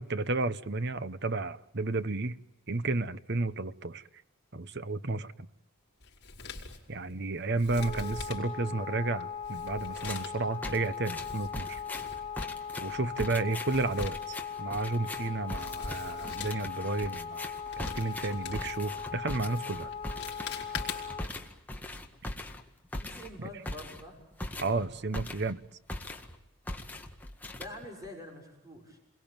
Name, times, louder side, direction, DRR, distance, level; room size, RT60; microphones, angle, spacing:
voice 1, 0.0-2.4 2.7-4.0 4.5-5.3 6.9-11.8 12.8-19.9 24.6-25.6, right 3 dB, 50° right, 1.0 m, -32 dB
Male speech man speaking, 6.0-21.3, left 5 dB, 50° left, 4.3 m, -45 dB
Wind instrument woodwind instrument, 7.8-21.3, left 7 dB, 25° left, 2.9 m, -39 dB
sound 1, 9.9-10.3 10.6-25.6 25.9-26.4 26.7-28.1, left 1 dB, 10° left, 1.8 m, -41 dB
voice 2, 23.0-24.2 24.5-24.9 26.7-26.9 27.5-29.0, left 1 dB, 15° right, 6.4 m, -46 dB
29.5 x 22.5 x 9.0 m
head